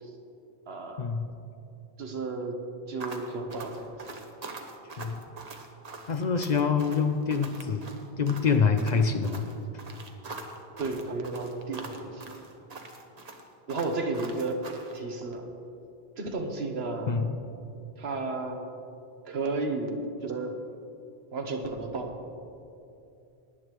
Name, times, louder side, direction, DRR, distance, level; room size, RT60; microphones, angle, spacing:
voice 1, 0.7-1.0 2.0-2.6 2.9-4.0 10.8-12.3 13.7-14.6 14.9-15.5 16.2-17.2 18.0-18.7 19.3-20.6 21.3-22.1, right 3 dB, 75° right, 4 dB, 1.3 m, -33 dB
sound 1, 3.0-15.0, right 3 dB, 40° right, 0.9 m, -43 dB
voice 2, 6.1-7.9 8.2-9.5 17.1-17.3, left 5 dB, 50° left, 7 dB, 0.6 m, -25 dB
18.5 x 10.0 x 3.1 m, 2.7 s
omnidirectional pair, 1.1 m